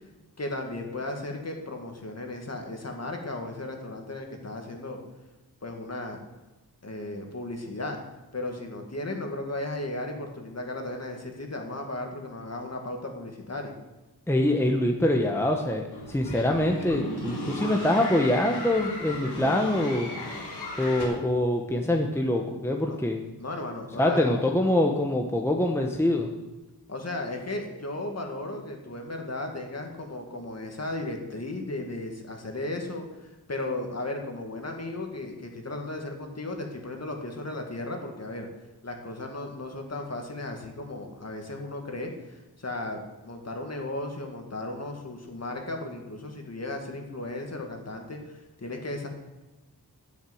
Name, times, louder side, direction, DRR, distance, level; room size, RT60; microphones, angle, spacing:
voice 1, 0.4-5.0 5.6-6.2 6.8-8.0 8.3-13.7 22.8-23.0 23.4-24.3 26.9-38.5 38.8-49.1, left 2 dB, 40° left, 2 dB, 2.1 m, -35 dB
voice 2, 14.3-20.1 20.8-23.2 24.0-26.3, left 1 dB, 5° left, 2 dB, 1.0 m, -24 dB
sound 1, 15.9-21.1, left 1 dB, 90° left, 3.1 m, -36 dB
9.9 x 8.1 x 7.9 m, 1.1 s
wide cardioid pair, 110°, 38 cm